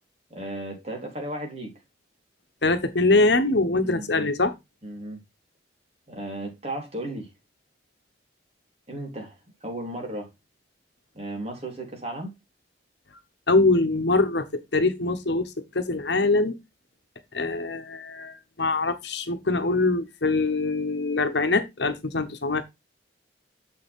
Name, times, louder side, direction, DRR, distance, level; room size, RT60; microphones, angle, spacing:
voice 1, 0.3-1.7 3.8-4.3 4.8-5.2 6.1-7.3 8.9-10.3 11.1-12.3, right 1 dB, 35° right, 3.7 m, -35 dB
voice 2, 2.6-4.5 13.5-16.6 17.3-22.6, left 3 dB, 70° left, 1.1 m, -23 dB
7.8 x 6.8 x 3.6 m
head